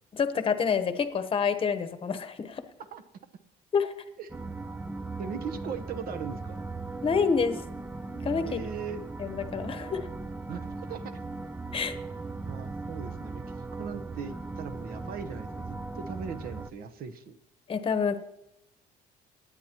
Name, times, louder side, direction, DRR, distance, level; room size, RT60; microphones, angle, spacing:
voice 1, 0.1-2.6 3.7-3.9 7.0-7.6 8.2-8.6 9.2-10.1 11.7-12.0 17.7-18.2, left 6 dB, 30° left, 9 dB, 0.9 m, -27 dB
sound 1, 4.3-16.7, right 3 dB, 10° right, 0.3 m, -38 dB
voice 2, 5.2-6.6 8.4-9.0 10.5-11.2 11.8-11.9 12.4-13.4 13.8-17.4, right 6 dB, 60° right, 8 dB, 1.0 m, -39 dB
18.5 x 9.6 x 3.0 m, 0.86 s
cardioid pair, 110°, 17 cm